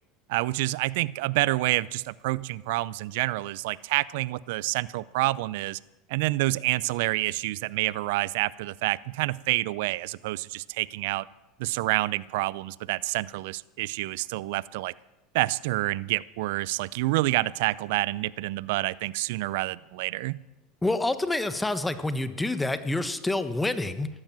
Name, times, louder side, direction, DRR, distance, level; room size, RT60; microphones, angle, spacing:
voice 1, 0.3-5.8 6.1-11.3 11.6-14.9 15.3-20.4, right 19 dB, 75° right, 21 dB, 0.5 m, -28 dB
voice 2, 20.8-24.1, left 2 dB, 10° left, 12 dB, 1.2 m, -27 dB
14.5 x 12.5 x 7.5 m, 0.99 s
hypercardioid pair, 100°, 0 cm